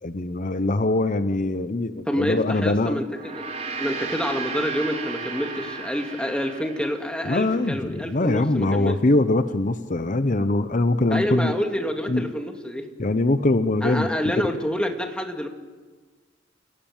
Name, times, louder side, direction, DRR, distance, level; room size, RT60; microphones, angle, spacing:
voice 1, 0.0-3.0 7.2-11.5 12.1-12.3 13.0-14.1, left 2 dB, 40° left, 11 dB, 0.9 m, -22 dB
voice 2, 2.1-9.0 11.1-12.9 13.8-15.5, equal, 5° left, 3 dB, 2.4 m, -28 dB
Gong, 3.1-7.7, right 4 dB, 35° right, 4.4 m, -34 dB
29.0 x 17.5 x 9.0 m, 1.4 s
head